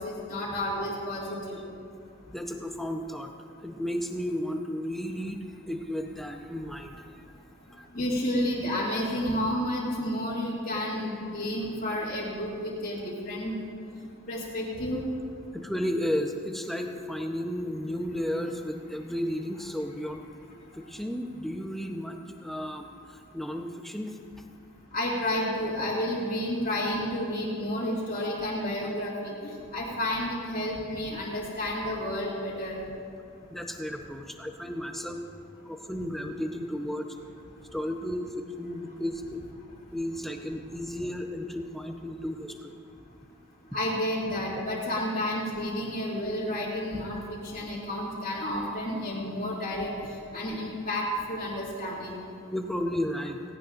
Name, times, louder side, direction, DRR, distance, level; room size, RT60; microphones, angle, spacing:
voice 1, 0.0-1.6 7.9-13.5 14.3-15.0 24.9-29.3 29.7-32.8 43.7-49.9 50.3-51.0 51.3-52.1, left 1 dB, 40° left, -10 dB, 2.3 m, -31 dB
voice 2, 2.3-3.3 3.6-7.2 7.7-7.9 15.5-20.2 20.7-24.2 33.5-35.2 35.6-37.2 37.6-39.4 39.9-42.7 52.5-53.4, equal, ahead, 3 dB, 0.8 m, -33 dB
17.5 x 17.5 x 2.6 m, 2.5 s
head